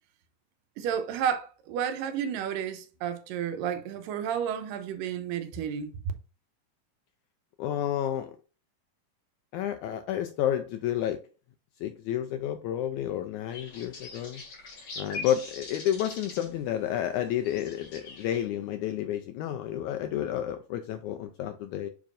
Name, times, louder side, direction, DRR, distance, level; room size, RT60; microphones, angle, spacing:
voice 1, 0.8-6.0, right 8 dB, 90° right, 2.4 m, -31 dB
voice 2, 7.6-8.3 9.5-11.2 11.8-14.4 15.0-21.9, left 11 dB, 85° left, 1.7 m, -30 dB
sound 1, 13.5-18.4, left 3 dB, 50° left, 3.2 m, -43 dB
7.3 x 5.1 x 2.5 m
omnidirectional pair, 3.9 m